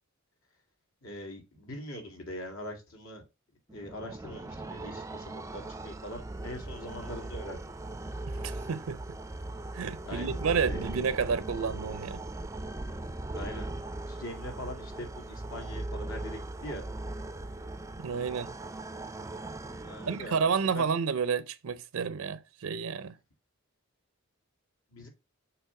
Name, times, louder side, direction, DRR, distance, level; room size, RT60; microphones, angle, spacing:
voice 1, 1.0-3.2 3.7-7.6 10.0-10.9 13.3-13.8 14.1-16.8 19.8-20.9 24.9-25.1, equal, 70° left, 2.4 m, -42 dB
sound 1, 3.7-20.7, right 2 dB, 15° right, 0.4 m, -39 dB
voice 2, 8.3-9.0 9.7-12.2 18.0-18.5 20.0-23.2, right 6 dB, 75° right, 0.5 m, -30 dB
7.0 x 3.3 x 5.7 m
head